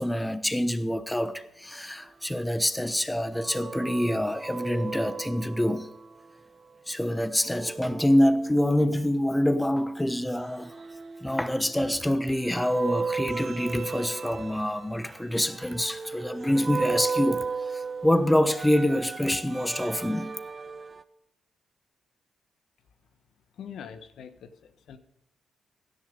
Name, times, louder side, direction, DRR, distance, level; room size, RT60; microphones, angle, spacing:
voice 1, 0.0-5.9 6.9-10.7 11.2-20.3, left 1 dB, 10° left, 1.0 m, -26 dB
sound 1, 3.3-6.3 7.4-9.2 10.4-12.0 12.4-21.0, right 5 dB, 40° right, 0.9 m, -36 dB
voice 2, 23.6-25.0, left 8 dB, 75° left, 1.1 m, -43 dB
15.5 x 11.0 x 5.3 m
cardioid pair, 70°, 0 cm